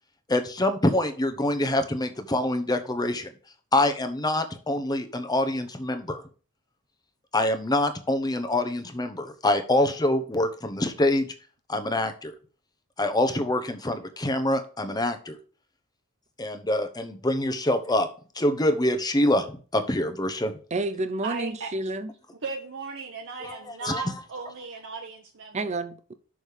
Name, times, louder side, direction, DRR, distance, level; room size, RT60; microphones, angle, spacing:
voice 1, 0.3-3.3 3.7-6.2 7.3-11.3 11.7-12.3 13.0-15.4 16.4-18.1 18.3-20.5 23.4-24.0, left 1 dB, 20° left, 0.9 m, -25 dB
voice 2, 20.7-22.1 25.5-26.1, right 2 dB, 30° right, 0.6 m, -30 dB
voice 3, 21.2-21.7 22.4-25.8, right 4 dB, 55° right, 1.0 m, -36 dB
6.3 x 5.3 x 6.5 m
head